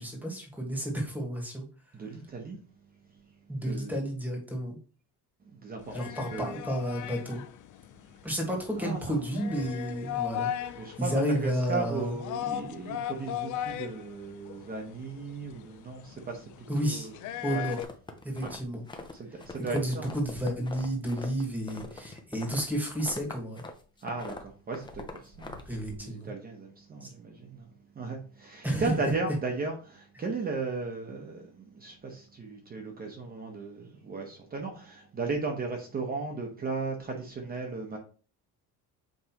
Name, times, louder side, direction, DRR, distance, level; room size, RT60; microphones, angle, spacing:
voice 1, 0.0-1.7 3.5-4.8 5.9-7.4 8.2-12.1 16.7-17.1 17.4-17.8 18.2-18.8 19.7-23.6 25.7-26.3 27.0-27.1 28.6-28.9, equal, 5° right, 1.6 m, -31 dB
voice 2, 1.9-2.6 3.1-3.2 3.5-3.9 5.4-6.6 8.0-8.2 8.8-9.2 10.8-17.2 17.5-17.7 18.4-18.5 19.1-20.1 24.0-38.0, right 3 dB, 25° right, 0.9 m, -36 dB
sound 1, 5.8-17.8, left 11 dB, 55° left, 0.5 m, -38 dB
sound 2, 17.7-19.1 19.4-23.7 24.0-26.0, left 3 dB, 10° left, 0.6 m, -43 dB
7.7 x 4.7 x 3.0 m
cardioid pair, 180°, 38 cm